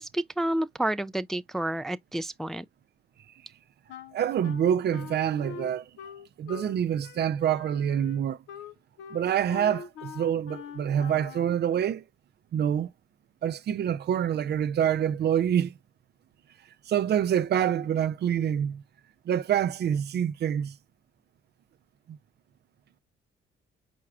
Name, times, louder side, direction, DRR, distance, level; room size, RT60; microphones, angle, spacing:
voice 1, 0.0-2.6, right 1 dB, ahead, 0.3 m, -30 dB
Wind instrument woodwind instrument, 3.9-6.8 7.0-11.5, left 7 dB, 75° left, 0.6 m, -43 dB
voice 2, 4.1-5.9 6.4-8.4 9.1-12.0 12.5-12.9 13.4-15.7 16.9-18.8 19.3-20.7 22.1-22.2, right 9 dB, 55° right, 0.5 m, -26 dB
4.7 x 4.2 x 2.4 m
cardioid pair, 90°, 20 cm